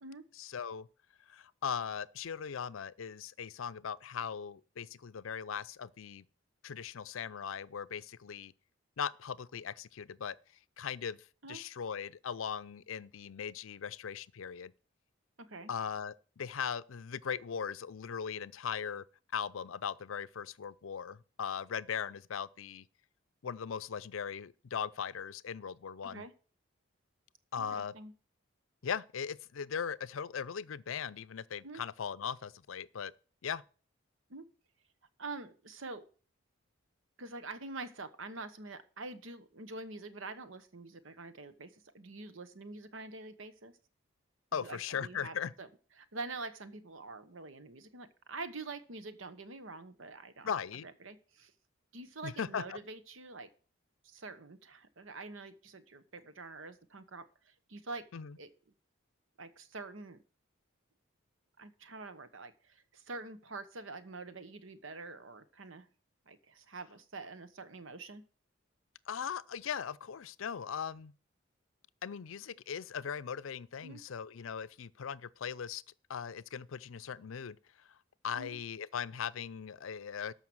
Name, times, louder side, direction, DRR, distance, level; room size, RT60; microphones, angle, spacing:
voice 1, 0.3-0.9 1.3-6.2 6.6-8.5 9.0-10.4 10.8-14.7 15.7-19.0 19.3-22.8 23.4-26.2 27.5-27.9 28.8-33.1 33.4-33.6 44.5-45.5 50.4-50.9 52.2-52.8 58.1-58.4 69.1-71.1 72.0-75.8 76.1-77.6 78.2-80.3, left 7 dB, 80° left, 0.5 m, -39 dB
voice 2, 15.4-15.7 26.0-26.3 27.6-28.1 31.6-31.8 34.3-34.4 35.2-36.1 37.2-43.7 44.5-45.7 46.0-50.5 50.8-51.5 51.9-53.5 54.0-58.1 58.4-58.5 59.4-60.2 61.6-65.9 66.3-68.2 73.8-74.0 78.3-78.6, right 3 dB, 75° right, 1.1 m, -46 dB
13.0 x 5.8 x 6.2 m
head